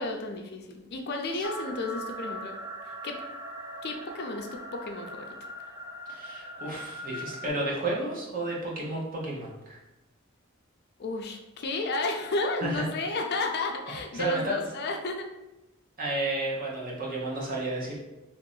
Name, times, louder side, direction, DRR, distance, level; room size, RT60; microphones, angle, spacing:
voice 1, 0.0-2.6 2.9-3.2 3.8-5.4 11.0-15.3, left 2 dB, 50° left, 3 dB, 0.4 m, -32 dB
sound 1, 1.4-7.5, equal, 15° right, 0.4 m, -40 dB
voice 2, 6.1-9.8 12.6-13.2 14.1-14.6 16.0-18.0, right 2 dB, 40° right, -3 dB, 0.9 m, -32 dB
3.0 x 2.7 x 3.9 m, 0.98 s
head